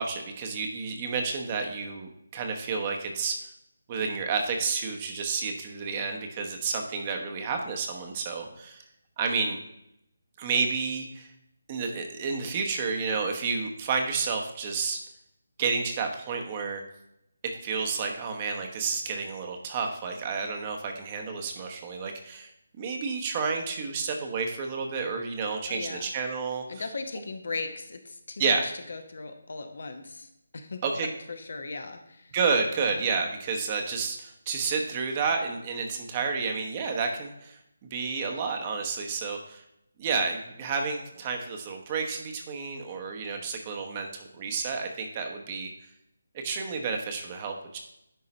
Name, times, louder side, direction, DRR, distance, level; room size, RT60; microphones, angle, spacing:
voice 1, 0.0-3.3 3.9-8.8 9.2-9.6 10.4-11.3 11.7-15.0 15.6-16.8 17.6-22.5 22.8-26.6 28.4-28.6 30.8-31.1 32.3-39.6 40.0-45.7 46.4-47.8, right 5 dB, 30° right, 3 dB, 1.0 m, -30 dB
voice 2, 25.7-26.1 26.7-30.8 31.3-32.3 32.8-33.0, left 3 dB, 60° left, 7 dB, 0.9 m, -38 dB
10.0 x 3.9 x 4.2 m, 0.81 s
figure-of-eight pair, 155°, 0 cm